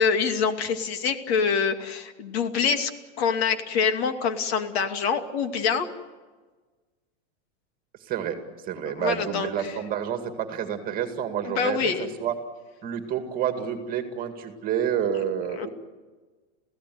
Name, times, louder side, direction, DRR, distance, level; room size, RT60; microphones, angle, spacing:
voice 1, 0.0-2.9 3.2-5.9 8.8-9.8 11.4-12.1 15.6-15.7, left 6 dB, 65° left, 7 dB, 2.6 m, -25 dB
voice 2, 8.1-8.4 8.7-12.3 12.8-15.7, right 9 dB, 25° right, 6 dB, 2.2 m, -29 dB
28.0 x 16.5 x 9.4 m, 1.3 s
supercardioid pair, 160°, 34 cm